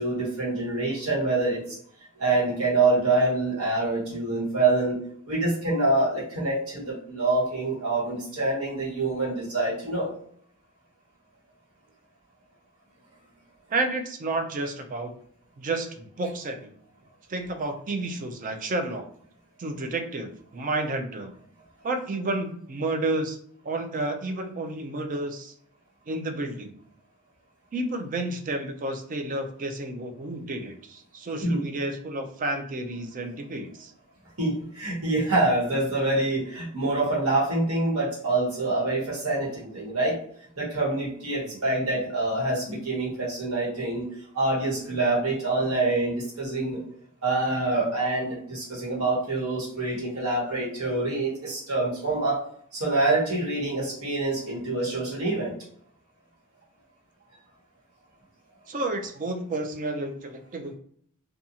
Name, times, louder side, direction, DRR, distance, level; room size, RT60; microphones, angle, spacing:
voice 1, 0.0-1.8 2.2-5.0 5.3-10.1 31.4-31.6 34.4-40.2 40.6-46.8 47.2-52.4 52.7-55.5, right 2 dB, 70° right, -6 dB, 1.3 m, -26 dB
voice 2, 13.7-15.1 15.6-16.7 17.3-19.1 19.6-21.3 21.8-23.4 23.6-25.5 26.1-26.7 27.7-33.9 41.5-41.6 58.7-60.7, right 2 dB, 40° right, 5 dB, 0.4 m, -31 dB
2.5 x 2.3 x 2.8 m, 0.62 s
head